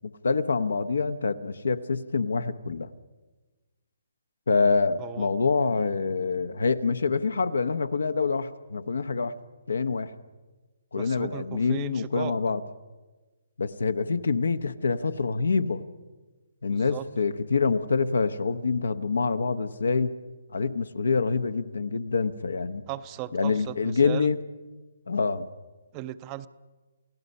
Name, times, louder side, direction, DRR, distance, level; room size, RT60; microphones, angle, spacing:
voice 1, 0.2-2.9 4.5-9.3 9.7-10.1 10.9-12.6 13.6-15.8 16.6-20.1 20.5-22.8 23.3-24.4 25.1-25.5, left 4 dB, 75° left, 11 dB, 1.0 m, -26 dB
voice 2, 5.0-5.3 11.0-12.3 16.7-17.1 22.9-24.3 25.9-26.5, right 14 dB, 25° right, 13 dB, 0.7 m, -37 dB
28.5 x 17.0 x 5.5 m, 1.2 s
figure-of-eight pair, 140°, 0 cm